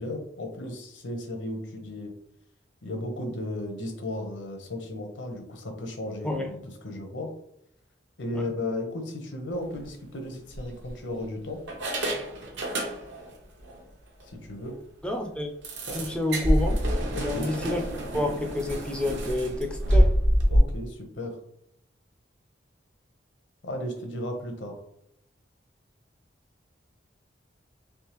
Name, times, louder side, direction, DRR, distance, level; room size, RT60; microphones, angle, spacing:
voice 1, 0.0-2.1 2.8-7.3 8.2-11.6 14.3-14.8 17.1-17.5 20.5-21.4 23.6-24.8, left 1 dB, 80° left, 4 dB, 0.8 m, -35 dB
sound 1, 9.6-9.8 10.5-11.2 11.7-13.3 13.6-13.8 14.2-14.3 14.6-14.7 15.6-20.6, equal, 70° right, 0.9 m, -26 dB
voice 2, 15.0-15.5 15.9-16.8 17.2-17.8 18.1-20.0, left 1 dB, 5° left, 3 dB, 0.3 m, -29 dB
3.5 x 3.1 x 2.9 m, 0.73 s
head